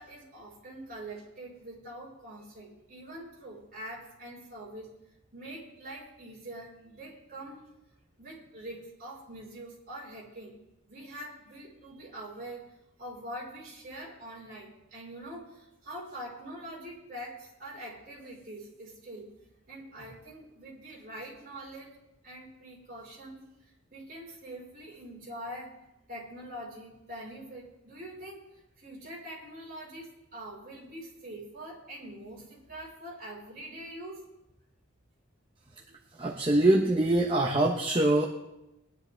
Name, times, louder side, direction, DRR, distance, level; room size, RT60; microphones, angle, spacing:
voice 1, 0.0-5.0 5.3-7.6 8.2-10.6 10.9-12.7 13.0-19.3 19.7-21.9 22.2-25.7 26.1-28.4 28.8-34.2, right 1 dB, 45° right, -3 dB, 4.2 m, -44 dB
voice 2, 36.2-38.3, right 1 dB, 25° right, -1 dB, 0.9 m, -24 dB
20.5 x 10.5 x 3.3 m, 0.91 s
head